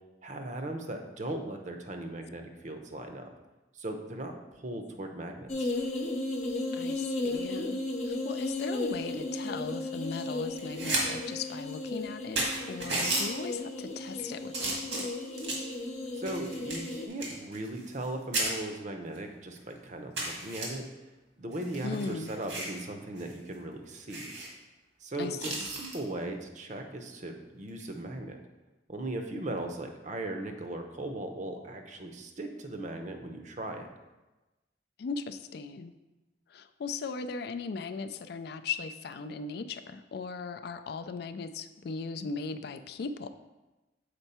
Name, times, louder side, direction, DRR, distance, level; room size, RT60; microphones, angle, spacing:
voice 1, 0.2-3.3 3.7-5.7 16.1-20.8 21.4-24.3 25.0-28.4 28.9-33.9, right 1 dB, 45° right, 5 dB, 0.7 m, -38 dB
sound 1, 5.5-17.1, left 2 dB, 40° left, 0.9 m, -35 dB
voice 2, 6.7-7.8 8.1-15.1 21.8-22.3 25.2-25.7 35.0-35.9 36.5-43.3, left 4 dB, 60° left, 10 dB, 0.4 m, -38 dB
sound 2, 10.5-11.0 11.4-11.5 12.0-12.1 12.4-13.3 13.9-14.2 14.5-15.7 16.3-18.1 18.3-18.5 19.1-19.2 19.6-19.7 20.2-20.7 21.5-22.8 23.2-23.3 23.6-23.7 24.1-24.5 25.4-26.0 27.7-27.9, right 2 dB, 85° right, 1.8 m, -33 dB
6.8 x 4.4 x 4.3 m, 1.1 s
head